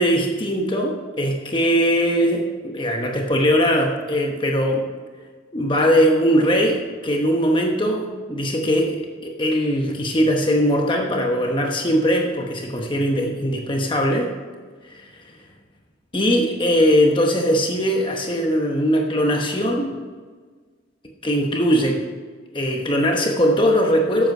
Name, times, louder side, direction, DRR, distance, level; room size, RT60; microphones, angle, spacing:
voice 1, 0.0-4.8 5.5-14.3 14.8-15.3 16.1-19.9 21.2-22.0 22.5-24.3, equal, 25° left, 1 dB, 1.0 m, -20 dB
12.5 x 8.1 x 5.5 m, 1.5 s
head